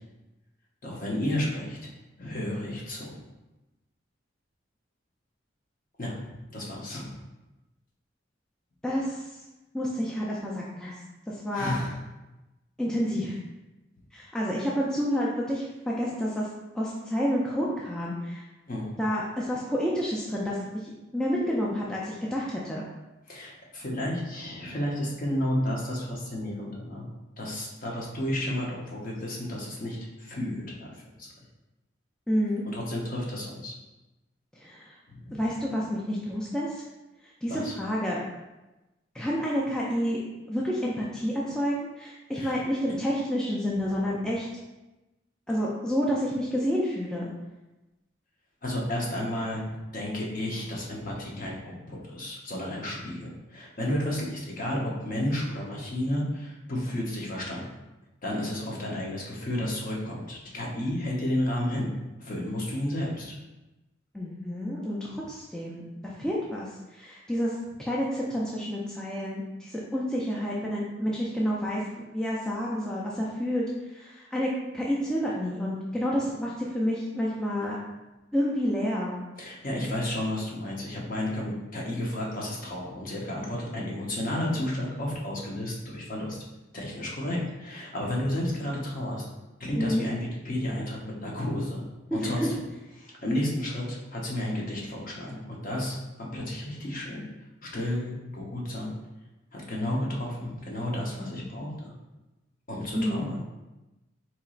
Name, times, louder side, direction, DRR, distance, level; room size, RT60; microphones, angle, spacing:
voice 1, 0.8-1.9 2.2-3.3 6.0-7.1 11.5-12.0 18.7-18.9 23.3-27.1 27.4-31.3 32.6-33.7 35.1-35.4 37.5-37.7 42.4-42.6 48.6-57.6 58.2-61.9 62.2-63.3 65.1-65.2 77.6-77.7 79.4-86.4 86.7-89.2 89.6-92.6 93.0-97.3 97.6-98.9 99.5-101.9 102.7-103.4, left 1 dB, 45° left, -2 dB, 0.8 m, -32 dB
voice 2, 8.8-9.3 9.7-11.0 11.3-11.7 12.8-13.4 14.1-16.5 16.7-18.4 19.0-22.9 32.3-32.6 34.6-35.0 35.3-36.8 37.4-38.2 39.1-44.5 45.5-47.3 64.1-67.5 67.8-73.6 73.9-77.8 78.3-79.2 89.8-90.1 92.1-92.5 101.2-101.3 102.9-103.3, equal, 5° left, -5 dB, 0.3 m, -29 dB
4.4 x 2.9 x 2.4 m, 1.0 s
head